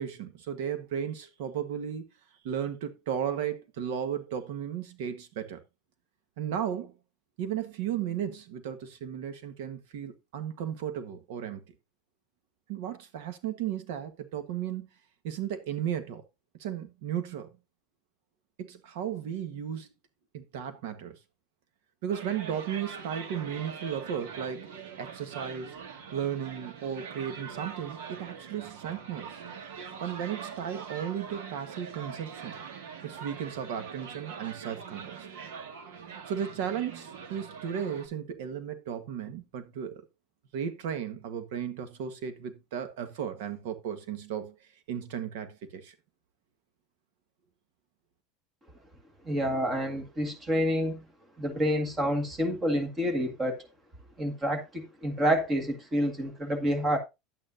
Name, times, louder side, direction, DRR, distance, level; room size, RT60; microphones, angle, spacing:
voice 1, 0.0-2.0 2.4-5.6 6.4-7.0 7.4-11.6 12.7-14.9 15.2-16.2 16.6-17.5 18.6-19.9 20.3-21.2 22.0-24.7 25.0-25.7 26.1-29.4 30.0-32.6 33.0-35.3 36.3-40.1 40.5-45.9, right 9 dB, 65° right, 1.3 m, -35 dB
sound 1, 22.1-38.1, right 6 dB, 85° right, 1.9 m, -43 dB
voice 2, 49.3-51.0 51.4-53.7 54.2-57.0, equal, 15° right, 1.8 m, -28 dB
11.0 x 8.9 x 2.6 m
supercardioid pair, 170°, 0 cm